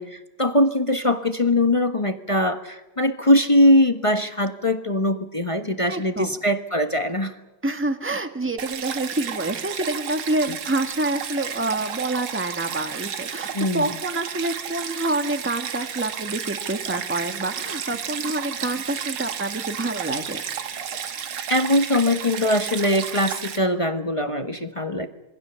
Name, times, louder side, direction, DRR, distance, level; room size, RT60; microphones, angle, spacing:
voice 1, 0.0-7.3 10.5-10.6 13.5-13.9 21.5-25.1, left 1 dB, 20° left, 7 dB, 0.9 m, -21 dB
voice 2, 5.9-6.3 7.6-20.4, right 2 dB, 5° right, 7 dB, 1.3 m, -27 dB
Stream, 8.6-23.6, right 8 dB, 75° right, 2.2 m, -32 dB
26.5 x 22.5 x 7.0 m, 1.0 s
omnidirectional pair, 2.3 m